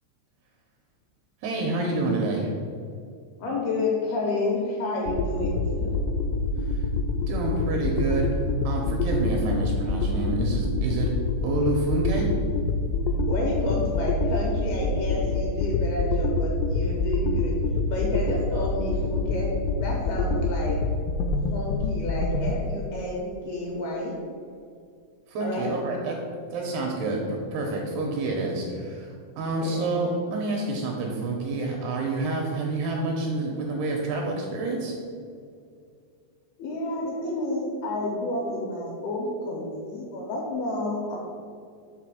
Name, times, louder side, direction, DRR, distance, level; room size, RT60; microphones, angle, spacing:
voice 1, 1.4-2.5 6.6-6.8 7.3-8.4 8.6-11.1 11.4-12.3 25.3-26.2 26.5-34.9, right 2 dB, 80° right, 0 dB, 2.5 m, -28 dB
voice 2, 3.4-5.9 13.2-17.5 17.9-20.8 21.5-24.1 25.4-25.7 29.6-30.0 36.6-41.2, left 2 dB, 75° left, -2 dB, 2.4 m, -30 dB
sound 1, 5.1-22.5, left 2 dB, 90° left, 2.9 m, -26 dB
6.7 x 3.7 x 6.2 m, 2.3 s
omnidirectional pair, 5.2 m